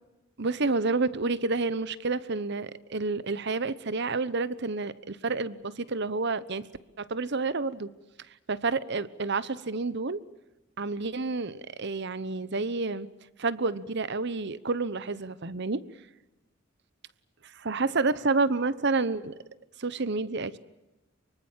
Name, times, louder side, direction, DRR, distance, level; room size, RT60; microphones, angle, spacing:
voice 1, 0.4-6.7 7.0-7.9 8.5-10.2 10.8-13.1 13.4-15.8 17.6-19.3 19.8-20.6, right 3 dB, 60° right, 17 dB, 1.0 m, -29 dB
24.5 x 24.0 x 7.4 m, 1.0 s
head